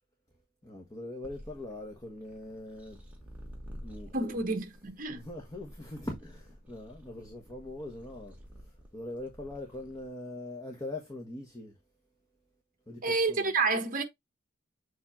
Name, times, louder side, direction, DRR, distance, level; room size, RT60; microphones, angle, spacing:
voice 1, 0.6-3.0 3.8-4.4 5.1-11.8 12.9-13.5, left 1 dB, 15° left, 1.3 m, -42 dB
sound 1, 1.2-10.1, equal, 5° right, 2.1 m, -50 dB
voice 2, 4.1-5.2 13.0-14.0, right 3 dB, 40° right, 1.2 m, -29 dB
7.3 x 3.3 x 4.3 m
head